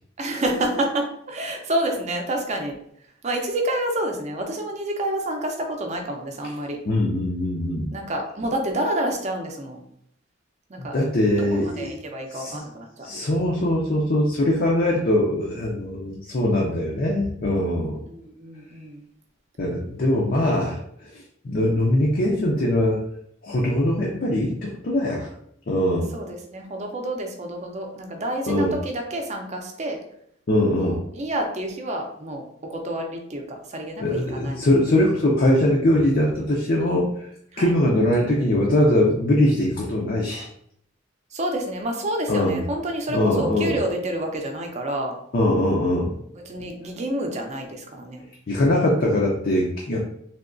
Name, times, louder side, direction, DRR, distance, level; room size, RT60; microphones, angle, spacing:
voice 1, 0.2-2.7 3.2-6.8 7.9-9.8 10.7-11.0 11.3-13.1 17.8-19.0 26.1-30.0 30.8-32.4 32.7-34.6 37.5-37.7 41.3-45.2 46.3-48.2, right 1 dB, 35° right, 3 dB, 0.6 m, -29 dB
voice 2, 6.9-7.9 10.9-11.9 12.3-12.6 13.0-18.0 19.6-20.8 21.4-23.0 23.4-25.3 25.7-26.1 28.5-28.7 30.5-31.0 34.0-37.1 37.6-40.5 42.3-42.6 43.1-43.8 45.3-46.1 48.5-50.0, left 1 dB, 50° left, -2 dB, 0.5 m, -21 dB
3.4 x 2.8 x 2.5 m, 0.69 s
head